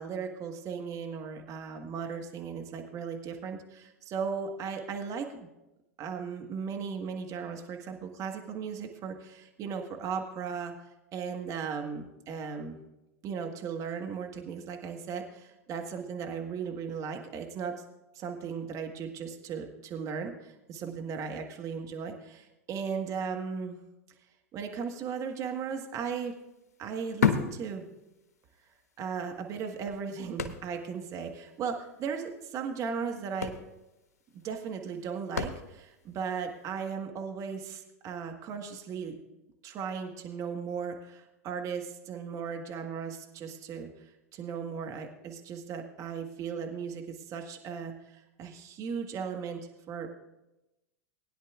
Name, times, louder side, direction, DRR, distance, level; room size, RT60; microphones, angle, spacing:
voice 1, 0.0-5.5 6.0-10.7 11.1-12.8 13.2-17.8 18.1-23.8 24.5-26.4 26.8-27.9 29.0-33.5 34.3-39.2 39.6-50.1, right 6 dB, 40° right, 4 dB, 1.4 m, -37 dB
sound 1, 25.4-25.6 25.8-28.5 28.8-28.9 29.5-31.0 31.3-31.4 31.7-31.9 32.8-32.9 33.2-36.0 36.6-36.7, left 6 dB, 85° left, 0.9 m, -32 dB
20.0 x 10.0 x 2.4 m, 0.96 s
hypercardioid pair, 90°, 8 cm